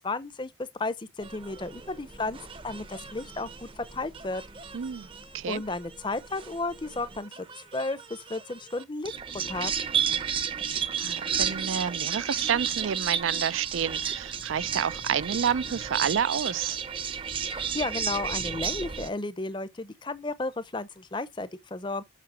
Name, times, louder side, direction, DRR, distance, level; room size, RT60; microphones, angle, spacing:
voice 1, 0.0-0.5 0.8-2.4 2.6-4.4 5.5-9.1 9.5-9.7 17.5-22.0, left 2 dB, 25° left, 0.6 m, -33 dB
sound 1, 1.2-19.1, right 7 dB, 25° right, 0.6 m, -33 dB
voice 2, 4.7-5.1 5.3-5.6 11.0-16.8, right 8 dB, 90° right, 0.4 m, -29 dB
7.5 x 5.9 x 4.8 m
head